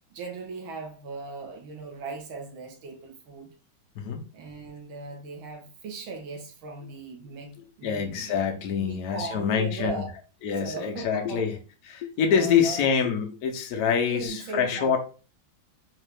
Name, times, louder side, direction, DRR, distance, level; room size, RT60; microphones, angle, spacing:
voice 1, 0.1-3.5 4.3-8.4 8.8-10.2 10.6-11.4 12.2-12.9 14.1-15.0, right 4 dB, 90° right, 1.7 m, -38 dB
voice 2, 7.8-10.0 10.4-11.6 11.9-15.0, left 7 dB, 65° left, 1.0 m, -25 dB
4.5 x 2.5 x 3.1 m
omnidirectional pair, 2.2 m